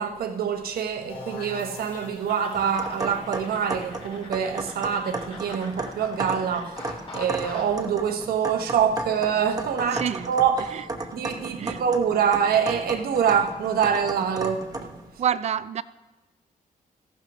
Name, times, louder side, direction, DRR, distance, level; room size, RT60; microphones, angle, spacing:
voice 1, 0.0-6.9 7.1-10.8 11.1-14.9, right 7 dB, 80° right, 1.1 m, -25 dB
sound 1, 1.1-6.7, left 2 dB, 85° left, 2.6 m, -45 dB
sound 2, 2.3-7.8, left 2 dB, 35° left, 2.6 m, -43 dB
sound 3, 2.5-15.1, right 2 dB, 25° right, 1.0 m, -35 dB
voice 2, 9.9-10.3 10.7-11.1 11.6-11.8 15.2-15.8, right 8 dB, 45° right, 0.4 m, -28 dB
14.5 x 12.0 x 3.0 m
cardioid pair, 125°, 15 cm